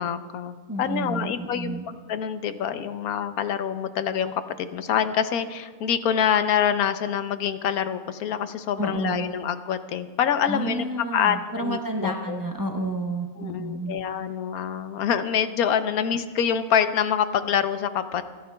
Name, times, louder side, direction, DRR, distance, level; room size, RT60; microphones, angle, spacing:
voice 1, 0.0-10.8 11.1-12.4 13.4-18.2, left 8 dB, 85° left, 10 dB, 1.2 m, -26 dB
voice 2, 0.7-1.9 8.8-9.3 10.5-14.0, right 1 dB, 20° right, 1 dB, 0.7 m, -30 dB
29.5 x 10.5 x 2.3 m, 1.5 s
omnidirectional pair, 1.5 m